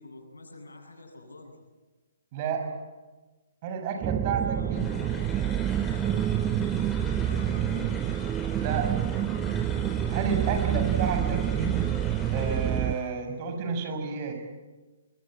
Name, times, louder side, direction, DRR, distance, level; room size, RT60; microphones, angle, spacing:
voice 1, 0.0-1.5 4.3-5.2 6.0-6.2 6.9-7.9, left 2 dB, 85° left, 2 dB, 7.9 m, -46 dB
voice 2, 2.3-2.8 3.6-5.0 8.5-9.2 10.1-11.9 12.3-14.3, right 5 dB, 40° right, 6 dB, 6.1 m, -31 dB
sound 1, 4.0-12.9, right 10 dB, 20° right, 0.9 m, -27 dB
sound 2, 4.7-13.1, left 3 dB, 10° left, 4.6 m, -44 dB
24.0 x 22.5 x 8.9 m, 1.2 s
figure-of-eight pair, 135°, 0 cm